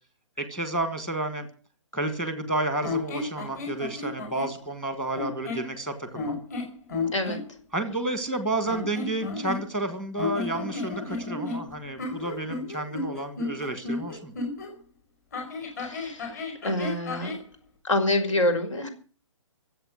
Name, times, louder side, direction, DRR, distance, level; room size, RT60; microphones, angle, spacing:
voice 1, 0.4-1.5 1.9-6.4 7.7-14.3, right 2 dB, 5° left, 9 dB, 1.4 m, -31 dB
sound 1, 2.8-4.5 5.1-5.7 6.1-7.4 8.6-9.9 10.2-14.7 15.3-17.4, left 3 dB, 35° left, 5.0 m, -33 dB
voice 2, 15.8-17.3 17.8-18.9, left 1 dB, 75° left, 7 dB, 5.5 m, -27 dB
23.5 x 8.0 x 6.3 m, 0.40 s
hypercardioid pair, 175°, 16 cm